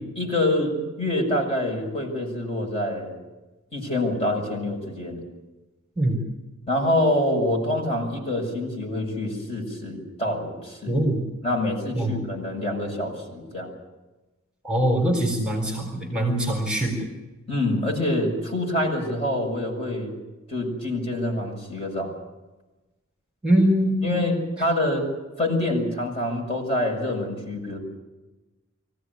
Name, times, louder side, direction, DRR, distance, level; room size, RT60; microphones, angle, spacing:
voice 1, 0.2-3.1 3.7-5.2 6.7-11.0 11.4-13.7 17.5-20.1 20.5-22.1 24.0-25.1 25.4-27.8, left 1 dB, 30° left, 0 dB, 6.9 m, -26 dB
voice 2, 10.9-11.3 12.0-12.2 14.6-17.1 23.4-24.1, right 1 dB, 5° right, 1 dB, 4.2 m, -23 dB
24.5 x 16.0 x 9.8 m, 1.1 s
head